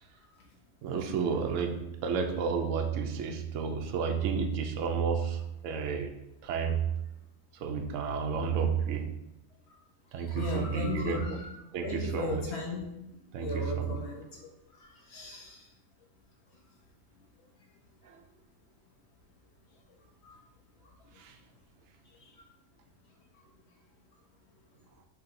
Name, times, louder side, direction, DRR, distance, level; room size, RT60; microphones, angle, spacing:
voice 1, 0.8-6.1 6.4-7.0 7.5-9.1 10.1-11.2 11.7-12.4 13.3-14.0 18.0-18.2 21.2-21.4, right 6 dB, 70° right, 4 dB, 0.9 m, -31 dB
voice 2, 10.1-11.5 11.8-13.0 13.4-14.5 14.8-15.7 20.2-20.3 20.8-21.2 22.2-22.5 23.3-23.4, left 3 dB, 55° left, 0 dB, 1.0 m, -37 dB
5.8 x 3.3 x 2.5 m, 0.89 s
omnidirectional pair, 1.5 m